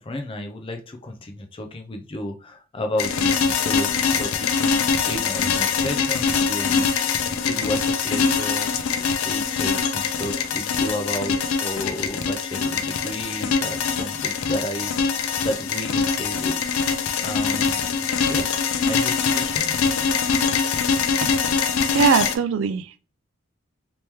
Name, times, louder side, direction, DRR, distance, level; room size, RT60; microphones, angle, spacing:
voice 1, 0.0-8.9 9.2-16.9 17.2-18.0 18.3-19.8, left 1 dB, 25° left, 0.4 m, -33 dB
sound 1, 3.0-22.4, left 5 dB, 85° left, 0.4 m, -23 dB
voice 2, 21.9-23.0, right 5 dB, 65° right, 0.3 m, -21 dB
3.0 x 2.9 x 3.5 m
head